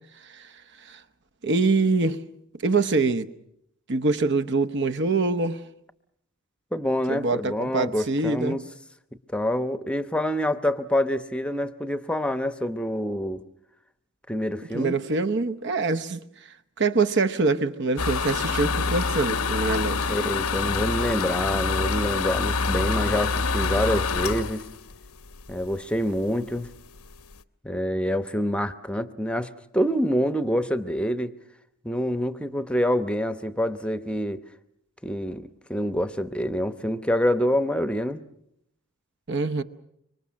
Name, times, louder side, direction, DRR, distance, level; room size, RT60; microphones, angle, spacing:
voice 1, 1.4-2.2 2.6-3.3 3.9-5.6 7.1-8.6 14.7-16.2 16.8-20.0 39.3-39.6, right 3 dB, 55° right, 1.0 m, -24 dB
voice 2, 6.7-8.6 9.3-13.4 14.3-15.0 20.1-24.6 25.5-26.7 27.6-31.3 31.8-34.4 35.0-38.2, equal, 5° left, 0.9 m, -26 dB
sound 1, 18.0-25.7 26.2-26.3 26.6-26.7 27.0-27.3, left 4 dB, 85° left, 0.9 m, -26 dB
25.5 x 24.0 x 6.3 m
head